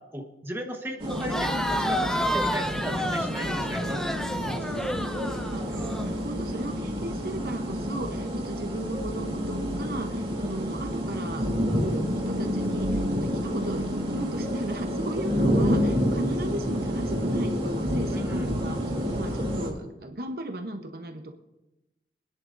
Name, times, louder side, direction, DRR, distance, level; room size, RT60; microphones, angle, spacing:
voice 1, 0.1-4.1 4.4-4.8 7.7-7.9 18.1-18.5, right 1 dB, 15° right, 2 dB, 1.1 m, -37 dB
sound 1, 1.0-19.7, equal, 30° right, 2.9 m, -29 dB
Crowd, 1.1-6.1, equal, 5° left, 0.5 m, -30 dB
voice 2, 5.5-18.8 19.1-21.3, right 1 dB, 55° right, 5 dB, 0.8 m, -36 dB
24.0 x 10.0 x 2.6 m, 0.99 s
head